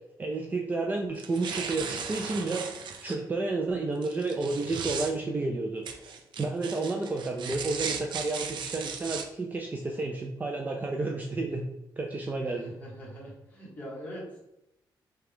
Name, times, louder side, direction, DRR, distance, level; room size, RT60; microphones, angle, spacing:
voice 1, 0.2-2.7 3.0-11.7 12.0-12.7, right 3 dB, 20° right, 1 dB, 0.4 m, -31 dB
sound 1, 1.2-3.2 4.0-5.1 5.9-9.2, right 6 dB, 75° right, 0.5 m, -36 dB
voice 2, 12.4-14.4, equal, 20° left, -5 dB, 1.4 m, -42 dB
5.8 x 2.3 x 3.5 m, 0.87 s
wide cardioid pair, 175°, 8 cm